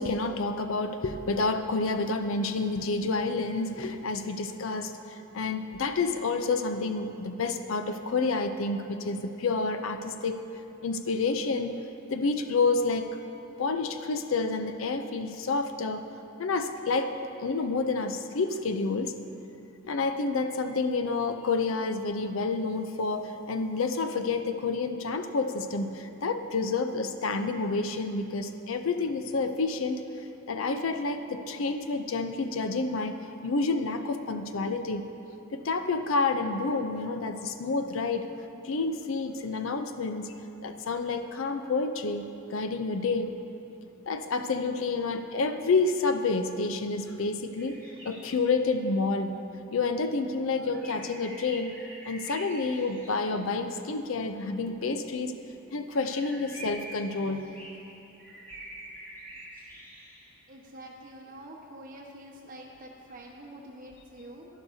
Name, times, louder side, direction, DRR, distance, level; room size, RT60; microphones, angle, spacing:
voice 1, 0.0-10.4 10.8-11.7 12.1-13.1 13.6-16.0 16.4-17.1 17.4-19.1 19.9-30.0 30.5-33.2 33.4-35.0 35.5-38.3 38.6-40.3 40.6-43.3 44.1-47.8 48.0-49.4 49.7-51.7 52.1-55.3 55.7-57.5, left 3 dB, 65° left, 8 dB, 0.5 m, -29 dB
sound 1, 47.6-48.8 50.6-53.6 55.9-60.4, right 1 dB, 10° left, 1.9 m, -46 dB
voice 2, 60.5-64.5, right 1 dB, 40° right, -1 dB, 1.2 m, -46 dB
12.0 x 11.5 x 2.7 m, 3.0 s
head